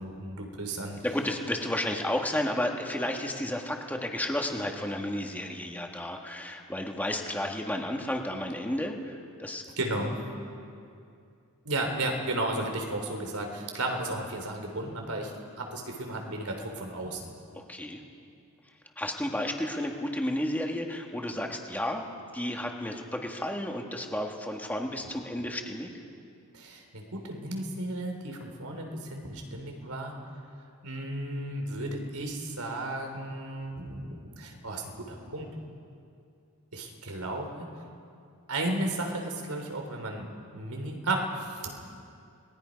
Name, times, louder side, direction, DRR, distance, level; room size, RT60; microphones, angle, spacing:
voice 1, 0.0-1.0 9.8-10.2 11.6-15.3 15.6-17.3 26.5-30.1 30.8-35.5 36.7-37.7 38.5-41.7, right 2 dB, 85° right, 3 dB, 3.5 m, -34 dB
voice 2, 1.0-9.6 17.5-18.0 19.0-22.0 22.3-25.9, left 1 dB, 10° left, 2 dB, 1.7 m, -32 dB
28.0 x 20.5 x 5.3 m, 2.5 s
head